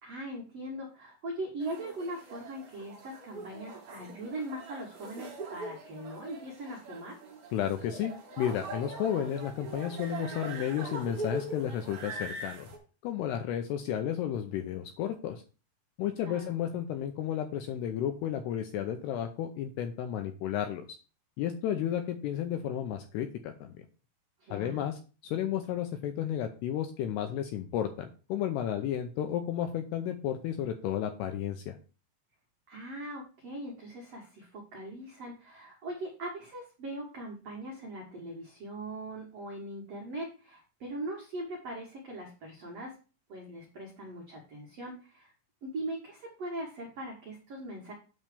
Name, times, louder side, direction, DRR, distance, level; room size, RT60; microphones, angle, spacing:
voice 1, 0.0-7.2 16.2-16.5 24.4-24.8 32.7-42.9 43.3-45.3 45.6-47.9, right 1 dB, 75° right, -2 dB, 1.5 m, -40 dB
sound 1, 1.6-12.8, right 2 dB, 45° right, 2.8 m, -42 dB
voice 2, 7.5-12.7 13.0-15.4 16.0-20.9 21.4-23.7 24.5-31.8, left 10 dB, 85° left, 6 dB, 2.4 m, -32 dB
9.0 x 3.2 x 6.7 m, 0.35 s
omnidirectional pair, 5.4 m